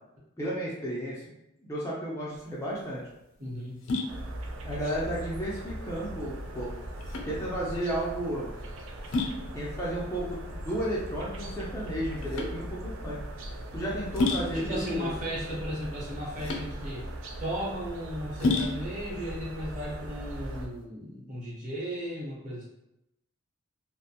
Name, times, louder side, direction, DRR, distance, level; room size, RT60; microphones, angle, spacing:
voice 1, 0.4-1.2 1.7-3.0 4.6-6.7 7.3-8.5 9.4-13.2 13.7-15.1, right 1 dB, 15° left, -6 dB, 0.4 m, -33 dB
sound 1, 2.3-20.8, left 3 dB, 70° left, 0.4 m, -35 dB
voice 2, 3.4-3.9 14.5-17.1 17.4-22.7, equal, 40° right, -6 dB, 0.9 m, -35 dB
sound 2, 4.1-20.7, right 1 dB, 75° right, 0.4 m, -39 dB
2.5 x 2.1 x 2.8 m, 0.86 s
head